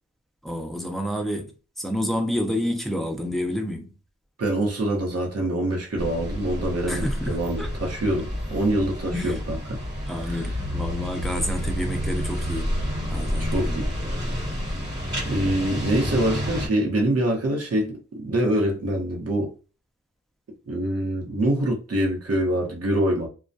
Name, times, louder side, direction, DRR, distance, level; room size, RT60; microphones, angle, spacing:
voice 1, 0.4-1.5 1.8-3.9 6.9-7.7 9.1-9.4 10.1-12.7 13.1-13.8, left 1 dB, ahead, 0.4 m, -29 dB
voice 2, 4.4-9.6 10.2-10.5 13.4-13.9 15.3-19.5 20.7-23.3, right 1 dB, 50° right, 0.8 m, -25 dB
sound 1, 6.0-16.7, equal, 35° right, 1.2 m, -29 dB
2.2 x 2.1 x 2.5 m
wide cardioid pair, 125°, 30 cm